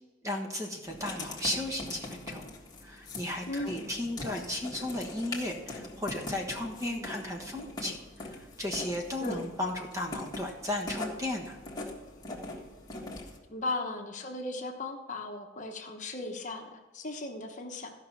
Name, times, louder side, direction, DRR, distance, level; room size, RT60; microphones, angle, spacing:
voice 1, 0.2-2.4 2.8-11.6, left 1 dB, 15° right, 2 dB, 1.2 m, -35 dB
Writing, 0.9-13.4, left 2 dB, 20° left, 1.7 m, -42 dB
voice 2, 3.5-3.9 6.8-7.1 9.2-9.5 13.5-17.9, left 2 dB, 40° left, 3 dB, 1.0 m, -37 dB
14.5 x 5.7 x 5.9 m, 1.3 s
head